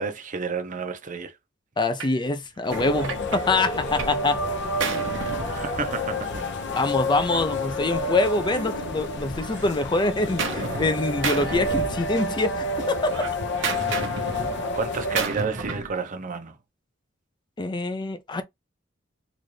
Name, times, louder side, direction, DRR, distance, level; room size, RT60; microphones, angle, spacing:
voice 1, 0.0-1.3 5.5-6.5 14.7-16.6, right 5 dB, 40° right, 0.7 m, -30 dB
voice 2, 1.8-4.4 6.8-13.1 17.6-18.4, left 2 dB, 25° left, 0.5 m, -25 dB
Gunshot gunfire, 2.0-2.2 2.7-4.2 4.5-6.2 7.2-9.0 9.4-10.9 11.2-12.5 12.8-16.0, right 4 dB, 70° right, 1.0 m, -33 dB
sound 1, 2.7-15.2, left 1 dB, 65° left, 0.8 m, -29 dB
3.9 x 2.5 x 3.2 m
head